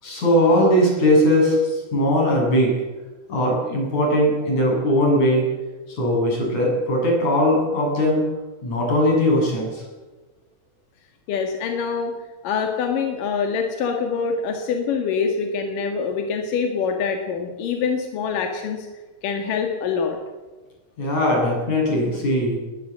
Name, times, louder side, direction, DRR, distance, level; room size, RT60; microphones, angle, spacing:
voice 1, 0.0-2.8 3.3-5.5 5.9-8.2 8.6-9.8 21.0-22.6, equal, 35° left, -2 dB, 8.9 m, -19 dB
voice 2, 11.3-12.1 12.4-18.9 19.2-20.2, left 5 dB, 55° left, 3 dB, 2.6 m, -25 dB
20.5 x 20.0 x 7.5 m, 1.2 s
omnidirectional pair, 6.0 m